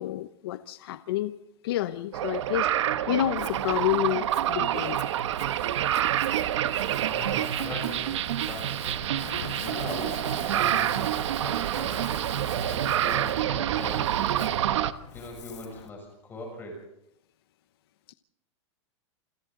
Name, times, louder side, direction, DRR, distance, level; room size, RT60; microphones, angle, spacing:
voice 1, 0.0-1.4 1.6-2.7 3.1-5.0 18.1-18.2, left 14 dB, 50° left, 11 dB, 0.8 m, -29 dB
sound 1, 2.1-14.9, right 11 dB, 70° right, 1.2 m, -27 dB
Ocean, 3.4-15.9, left 10 dB, 70° left, 1.8 m, -46 dB
voice 2, 7.0-14.7 15.1-16.9, left 2 dB, 15° left, 1 dB, 6.3 m, -41 dB
28.0 x 26.0 x 3.9 m, 0.81 s
supercardioid pair, 170°, 16 cm